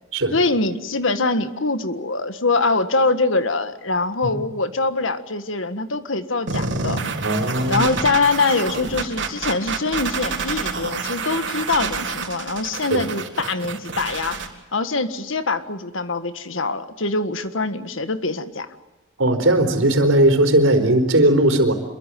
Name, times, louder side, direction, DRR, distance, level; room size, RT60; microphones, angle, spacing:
voice 1, 0.3-7.0 7.7-14.4 14.7-18.7, left 3 dB, 75° left, 10 dB, 1.7 m, -23 dB
sound 1, 6.5-14.5, right 4 dB, 60° right, 3.8 m, -28 dB
voice 2, 7.2-7.9 12.9-13.0 19.2-21.7, right 1 dB, 80° right, 6 dB, 4.3 m, -17 dB
27.5 x 23.0 x 7.7 m, 1.1 s
head